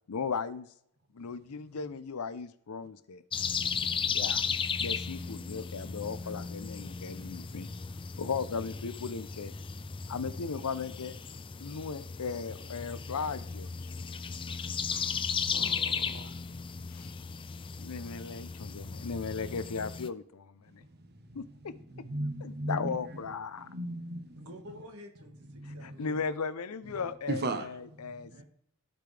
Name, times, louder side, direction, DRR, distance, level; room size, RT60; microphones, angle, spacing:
voice 1, 0.1-0.7 1.1-3.2 4.1-4.4 4.8-7.7 8.2-9.5 10.1-11.1 11.6-13.9 16.9-17.1 17.8-20.8 21.3-21.7 22.4-23.7 25.8-28.4, left 5 dB, 80° left, 15 dB, 0.6 m, -37 dB
sound 1, 3.3-20.1, left 6 dB, 25° left, 0.4 m, -36 dB
voice 2, 14.9-16.3 20.8-22.9 23.6-24.4 25.5-26.0 27.3-28.4, right 1 dB, 50° right, 8 dB, 1.0 m, -38 dB
voice 3, 24.3-26.2 28.3-28.4, equal, 80° right, 5 dB, 1.7 m, -50 dB
15.5 x 5.2 x 3.3 m, 0.74 s
head